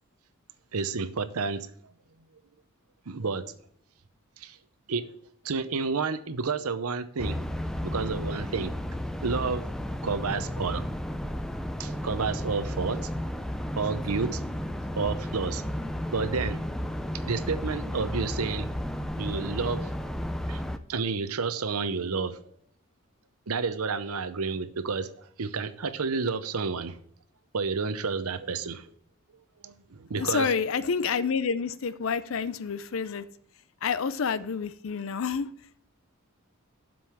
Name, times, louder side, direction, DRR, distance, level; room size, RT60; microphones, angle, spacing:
voice 1, 0.7-1.7 3.1-3.6 4.4-4.6 4.9-5.1 5.4-7.4 7.8-9.6 10.0-10.8 11.8-13.1 13.8-14.4 15.0-15.7 16.1-16.6 17.1-18.7 19.2-19.9 20.5-20.6 20.9-22.4 23.5-25.1 25.4-27.0 27.5-28.9 29.6-30.5, right 4 dB, 85° right, 0.7 m, -30 dB
sound 1, 7.2-20.8, equal, ahead, 0.4 m, -33 dB
voice 2, 30.1-33.3 33.8-35.5, left 6 dB, 65° left, 0.5 m, -28 dB
7.7 x 5.4 x 7.2 m
head